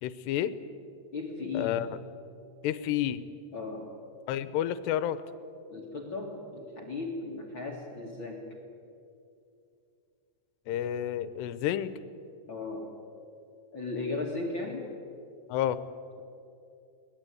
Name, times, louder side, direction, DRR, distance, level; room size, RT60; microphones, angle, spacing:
voice 1, 0.0-0.5 1.5-1.9 2.6-3.2 4.3-5.2 10.7-11.9 15.5-15.8, left 11 dB, 80° left, 13 dB, 2.9 m, -30 dB
voice 2, 1.1-1.9 3.5-3.9 5.7-8.5 12.5-12.9 13.7-14.9, left 3 dB, 40° left, 0 dB, 2.0 m, -36 dB
23.0 x 19.0 x 9.3 m, 2.6 s
omnidirectional pair, 5.0 m